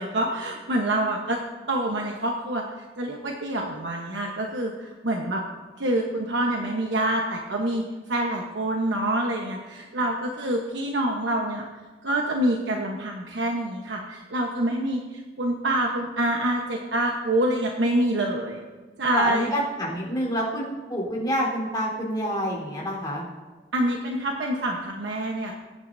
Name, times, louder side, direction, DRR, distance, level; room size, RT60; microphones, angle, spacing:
voice 1, 0.0-1.4 1.7-2.6 3.0-5.4 5.8-7.8 8.1-11.6 12.0-15.0 15.4-18.6 19.0-19.5 23.7-25.5, right 1 dB, 85° right, 0 dB, 1.1 m, -26 dB
voice 2, 19.1-23.3, equal, 20° left, -4 dB, 3.9 m, -27 dB
21.5 x 10.0 x 2.7 m, 1.3 s
head